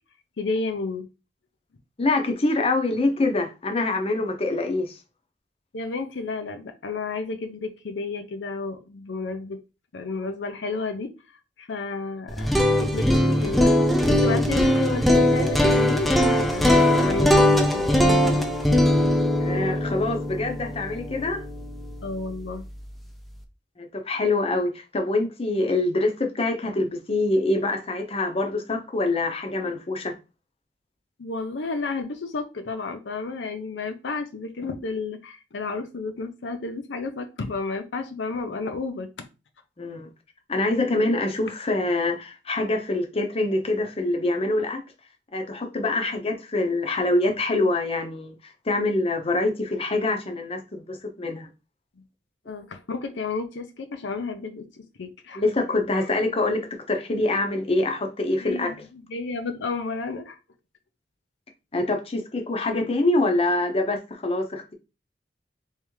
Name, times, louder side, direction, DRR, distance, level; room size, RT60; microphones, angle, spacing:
voice 1, 0.4-1.1 4.2-4.3 5.7-9.6 9.9-11.1 11.6-13.7 14.0-18.5 22.0-22.6 31.2-39.1 52.5-54.7 55.0-55.4 56.0-56.1 58.4-60.4, left 3 dB, 75° left, 0.5 m, -32 dB
voice 2, 2.0-5.0 19.4-21.4 23.8-30.1 39.8-40.1 40.5-44.8 45.3-51.5 55.3-58.7 61.7-64.7, left 2 dB, 35° left, 0.7 m, -25 dB
sound 1, 12.3-22.3, left 1 dB, ahead, 0.4 m, -21 dB
3.5 x 3.2 x 3.1 m
head